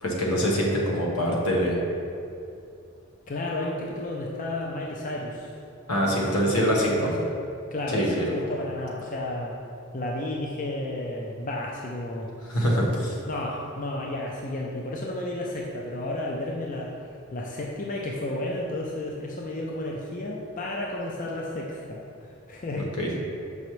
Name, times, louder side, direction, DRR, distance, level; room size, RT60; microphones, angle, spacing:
voice 1, 0.0-1.7 5.9-7.1 7.9-8.3 12.5-13.2 22.8-23.1, equal, 80° left, -3 dB, 1.2 m, -24 dB
voice 2, 3.3-5.5 6.0-6.7 7.0-7.3 7.7-9.6 9.9-12.6 13.3-16.9 17.3-22.9, left 1 dB, 35° left, -2 dB, 0.5 m, -32 dB
6.7 x 5.4 x 3.1 m, 2.6 s
head